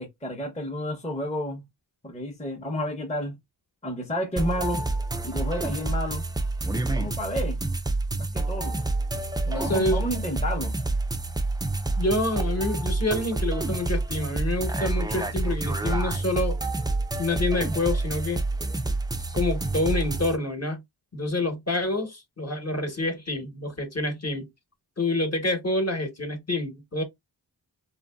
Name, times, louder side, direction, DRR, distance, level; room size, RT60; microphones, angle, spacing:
voice 1, 0.0-1.6 2.0-3.4 3.8-4.9 5.2-6.3 6.9-7.6 8.2-8.8 9.5-10.7, equal, 15° left, 0.7 m, -31 dB
sound 1, 4.4-20.4, right 2 dB, 10° right, 0.3 m, -28 dB
voice 2, 9.5-10.0 12.0-16.6 17.2-18.4 19.3-20.8 21.1-24.5 25.0-27.0, left 2 dB, 35° left, 1.0 m, -27 dB
2.9 x 2.5 x 2.2 m
wide cardioid pair, 55°, 43 cm